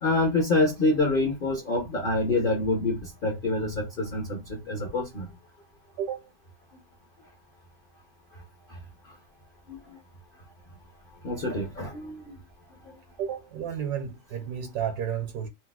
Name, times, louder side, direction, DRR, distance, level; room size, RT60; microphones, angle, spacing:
voice 1, 0.0-5.3 8.7-8.8 9.7-10.0 11.2-12.4 12.8-13.0, left 2 dB, 50° left, 0.6 m, -27 dB
voice 2, 6.0-6.3 13.2-15.5, right 8 dB, 70° right, 1.2 m, -32 dB
4.2 x 2.0 x 2.2 m
omnidirectional pair, 1.9 m